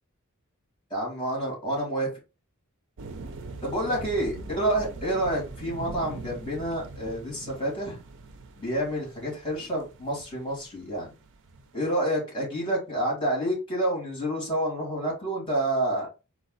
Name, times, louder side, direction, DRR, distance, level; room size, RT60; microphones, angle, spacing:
voice 1, 0.9-2.1 3.6-8.0 8.6-11.1 11.7-16.1, right 1 dB, 20° left, -2 dB, 2.3 m, -28 dB
sound 1, 3.0-11.9, right 3 dB, 60° right, 0.5 m, -42 dB
4.1 x 2.3 x 3.9 m, 0.29 s
head